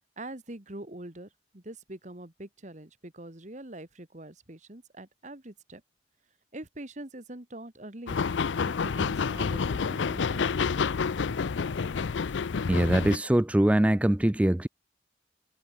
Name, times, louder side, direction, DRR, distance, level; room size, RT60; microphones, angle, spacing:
voice 1, 0.2-5.8 6.5-8.2 8.8-10.5, right 1 dB, 40° right, 2.0 m, -44 dB
sound 1, 8.1-13.2, left 5 dB, 85° left, 0.5 m, -29 dB
voice 2, 12.7-14.7, right 1 dB, 5° right, 0.3 m, -23 dB
head